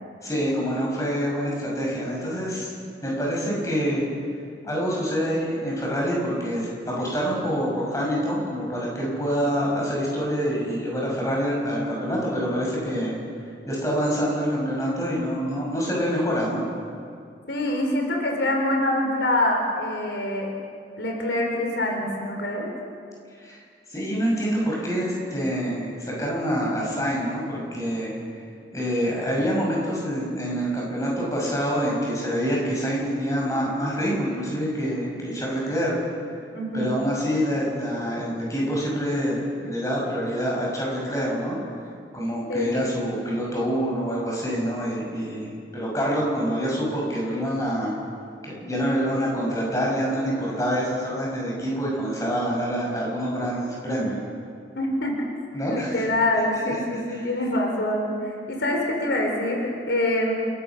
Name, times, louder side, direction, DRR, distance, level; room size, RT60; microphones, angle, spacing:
voice 1, 0.2-2.7 3.0-4.0 4.6-6.7 7.0-13.2 13.7-16.6 23.4-23.6 23.9-28.1 28.7-36.0 36.7-41.6 42.1-47.9 48.4-54.2 55.5-56.0 56.6-56.7 57.1-57.3, equal, 20° left, -4 dB, 6.4 m, -26 dB
voice 2, 17.5-20.5 21.0-22.7 36.5-36.9 42.5-42.7 54.8-55.2 55.7-60.3, left 1 dB, 85° left, 1 dB, 3.9 m, -25 dB
28.5 x 17.0 x 6.0 m, 2.3 s
head